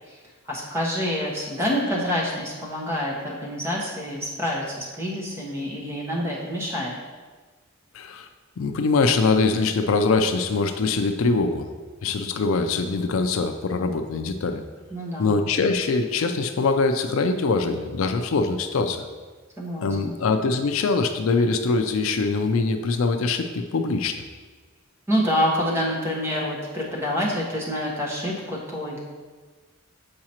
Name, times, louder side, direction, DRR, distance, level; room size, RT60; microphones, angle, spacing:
voice 1, 0.5-6.9 14.9-15.4 19.6-20.1 25.1-29.0, equal, 10° right, -4 dB, 1.1 m, -27 dB
voice 2, 7.9-8.3 8.6-11.7 12.0-14.6 15.2-19.1 19.8-24.2, left 3 dB, 70° left, 6 dB, 0.4 m, -23 dB
7.5 x 4.8 x 2.9 m, 1.4 s
head